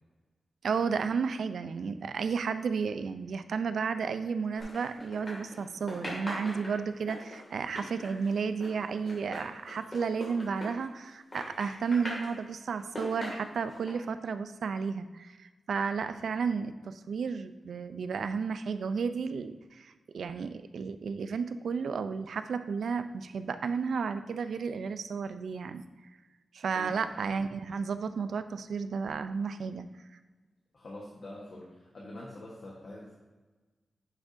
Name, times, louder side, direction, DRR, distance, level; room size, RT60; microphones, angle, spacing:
voice 1, 0.6-25.8 26.5-29.9, right 5 dB, 75° right, 11 dB, 0.4 m, -33 dB
sound 1, 4.6-5.6 5.9-11.1 11.3-12.3 12.8-13.9, left 1 dB, 25° left, 2.1 m, -40 dB
voice 2, 26.7-27.2 30.7-33.1, left 1 dB, 45° left, -4 dB, 1.2 m, -45 dB
9.8 x 6.1 x 2.6 m, 1.3 s
wide cardioid pair, 180°, 0 cm